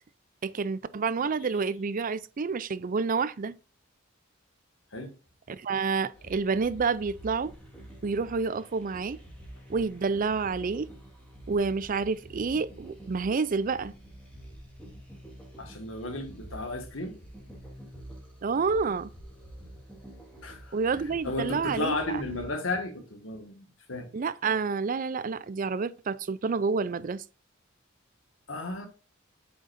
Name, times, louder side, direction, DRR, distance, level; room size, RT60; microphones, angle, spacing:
voice 1, 0.4-3.6 5.5-7.5 8.0-9.2 9.7-10.9 11.5-13.9 18.4-19.1 20.7-22.2 24.1-27.2, right 4 dB, 45° right, 0.4 m, -29 dB
sound 1, 6.1-22.5, right 1 dB, 5° left, 3.1 m, -48 dB
voice 2, 15.6-17.2 20.4-20.7 21.2-24.1 28.5-28.9, left 2 dB, 80° left, 1.8 m, -34 dB
8.1 x 6.3 x 2.6 m
head